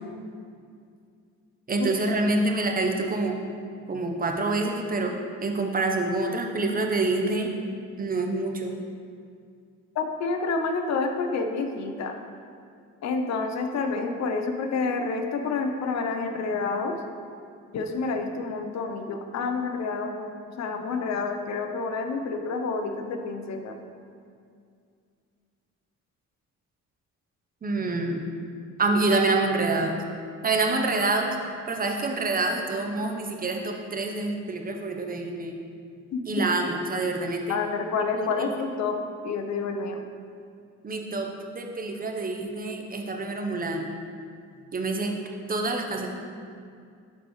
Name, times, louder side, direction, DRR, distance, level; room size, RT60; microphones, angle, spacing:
voice 1, 1.7-3.4 3.9-5.1 5.4-7.5 8.0-8.7 27.6-28.2 28.8-30.0 30.4-31.4 31.7-35.6 36.3-37.6 38.2-38.4 40.8-41.3 41.5-43.9 44.7-45.1 45.5-46.1, right 2 dB, 30° right, 3 dB, 0.9 m, -26 dB
voice 2, 9.9-12.2 13.0-17.0 17.7-23.8 36.1-36.2 37.5-39.0 39.2-40.0, left 4 dB, 65° left, 5 dB, 0.8 m, -29 dB
12.0 x 4.2 x 3.2 m, 2.3 s
cardioid pair, 90°, 30 cm